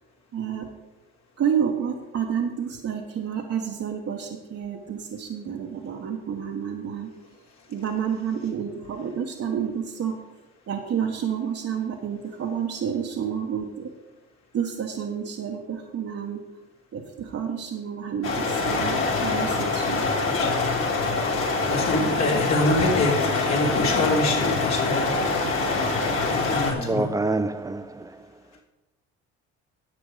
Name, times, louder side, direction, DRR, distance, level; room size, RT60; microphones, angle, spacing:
voice 1, 0.3-0.7 1.4-7.1 7.7-10.1 10.7-13.9 14.5-16.4 16.9-20.1, right 8 dB, 50° right, 1.2 m, -29 dB
sound 1, 18.2-26.7, left 3 dB, 45° left, 2.6 m, -24 dB
voice 2, 21.7-25.1 26.3-27.1, left 2 dB, 65° left, 3.1 m, -25 dB
voice 3, 26.8-27.9, right 2 dB, 10° right, 0.5 m, -26 dB
10.5 x 7.7 x 4.9 m
supercardioid pair, 75°, 30 cm